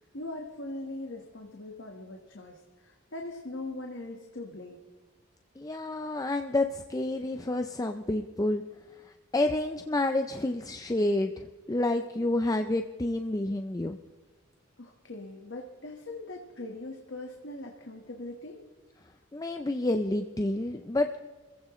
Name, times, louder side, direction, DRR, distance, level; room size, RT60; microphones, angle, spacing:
voice 1, 0.1-4.8 14.8-18.6, left 2 dB, 60° left, 2 dB, 1.5 m, -41 dB
voice 2, 5.6-8.6 9.3-14.0 19.3-21.2, left 2 dB, 15° left, 6 dB, 0.5 m, -29 dB
28.5 x 15.5 x 3.2 m, 1.4 s
head